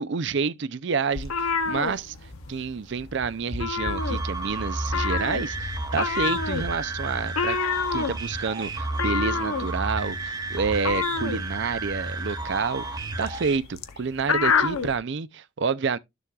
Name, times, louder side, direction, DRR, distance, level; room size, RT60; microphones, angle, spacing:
voice 1, 0.0-1.3 1.6-2.1 2.5-7.6 7.9-16.0, right 5 dB, 55° right, 0.5 m, -28 dB
sound 1, 1.1-2.6 2.9-3.1 3.4-4.5 4.9-15.0, left 5 dB, 85° left, 0.8 m, -28 dB
sound 2, 1.2-14.9, left 1 dB, 50° left, 1.8 m, -43 dB
sound 3, 4.0-13.6, right 2 dB, 20° right, 0.8 m, -32 dB
12.5 x 6.8 x 2.4 m
head